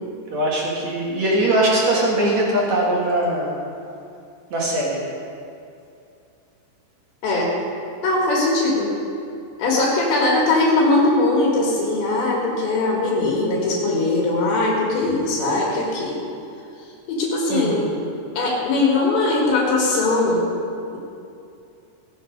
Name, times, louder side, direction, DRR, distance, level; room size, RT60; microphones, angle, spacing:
voice 1, 0.3-3.6 4.5-5.0 17.5-17.8, right 1 dB, 65° right, -3 dB, 1.7 m, -21 dB
voice 2, 8.0-8.9 9.6-16.2 17.1-17.9 18.4-20.4, left 2 dB, 65° left, -3 dB, 4.0 m, -20 dB
18.5 x 8.1 x 5.2 m, 2.5 s
omnidirectional pair, 5.9 m